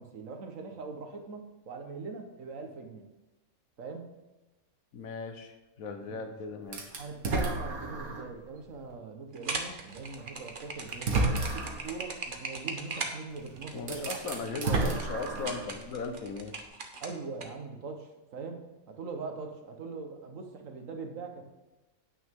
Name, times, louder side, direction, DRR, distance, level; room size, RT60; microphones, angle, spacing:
voice 1, 0.0-3.0 3.8-4.1 6.1-6.2 6.9-14.2 14.6-15.0 17.0-21.4, right 4 dB, 65° right, 4 dB, 1.6 m, -41 dB
voice 2, 4.9-7.0 13.7-16.5, left 4 dB, 70° left, 6 dB, 1.4 m, -38 dB
sound 1, 6.7-8.3 8.9-9.0 10.2-10.3 10.9-11.9 13.3-13.4 13.8-15.8, right 3 dB, 80° right, 1.8 m, -31 dB
sound 2, 9.3-17.5, right 3 dB, 40° right, 1.1 m, -39 dB
9.4 x 8.8 x 3.7 m, 1.1 s
omnidirectional pair, 1.5 m